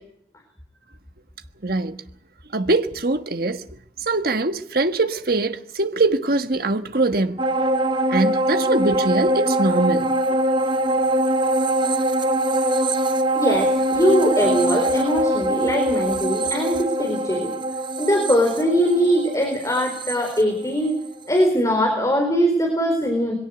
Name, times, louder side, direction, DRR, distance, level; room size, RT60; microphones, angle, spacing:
voice 1, 1.6-2.0 2.5-3.6 4.0-7.4 8.1-10.4, right 2 dB, 55° right, 1.4 m, -22 dB
sound 1, 7.4-21.1 21.5-21.6, right 1 dB, 25° right, 1.0 m, -22 dB
voice 2, 13.4-17.5 18.0-21.0 21.3-23.3, equal, 20° left, 4.3 m, -21 dB
22.5 x 17.5 x 7.9 m
head